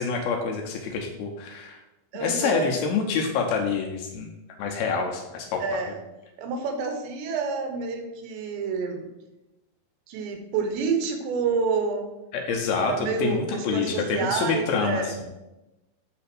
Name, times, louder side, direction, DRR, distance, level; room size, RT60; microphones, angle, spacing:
voice 1, 0.0-1.8 2.2-4.3 4.6-5.6 12.3-15.1, left 5 dB, 80° left, 2 dB, 2.3 m, -27 dB
voice 2, 2.1-2.7 5.6-6.0 6.4-9.1 10.1-12.1 12.8-15.1, right 5 dB, 80° right, 5 dB, 3.2 m, -28 dB
8.7 x 3.4 x 5.9 m, 0.99 s
omnidirectional pair, 5.0 m